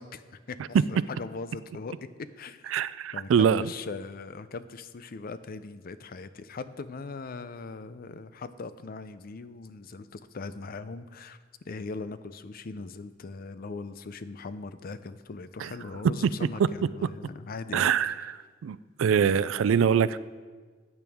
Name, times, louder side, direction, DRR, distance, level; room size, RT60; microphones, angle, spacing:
voice 1, 0.0-2.7 3.1-11.4 11.6-18.3, left 4 dB, 50° left, 13 dB, 0.5 m, -40 dB
voice 2, 2.7-3.7 15.6-15.7 17.7-18.1 18.6-20.2, right 7 dB, 90° right, 16 dB, 0.3 m, -23 dB
14.5 x 8.9 x 3.5 m, 1.5 s
head